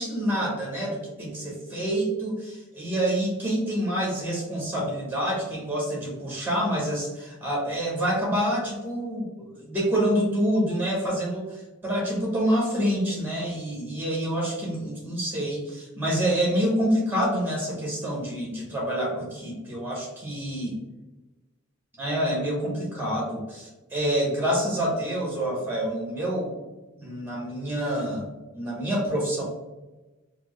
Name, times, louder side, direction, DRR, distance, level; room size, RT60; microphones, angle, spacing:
voice 1, 0.0-20.8 22.0-26.5 27.0-28.3 28.5-29.4, equal, 10° right, -3 dB, 0.9 m, -27 dB
4.2 x 2.0 x 3.0 m, 1.1 s
head